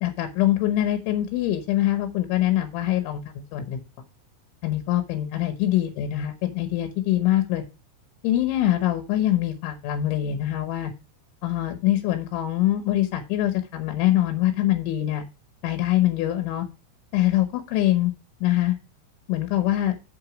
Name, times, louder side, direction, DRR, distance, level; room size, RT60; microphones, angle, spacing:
voice 1, 0.0-3.8 4.6-7.6 8.2-10.9 11.4-15.3 15.6-16.7 17.1-18.1 18.4-18.8 19.3-20.0, left 13 dB, 75° left, 7 dB, 3.2 m, -24 dB
7.7 x 6.1 x 5.1 m, 0.29 s
omnidirectional pair, 6.0 m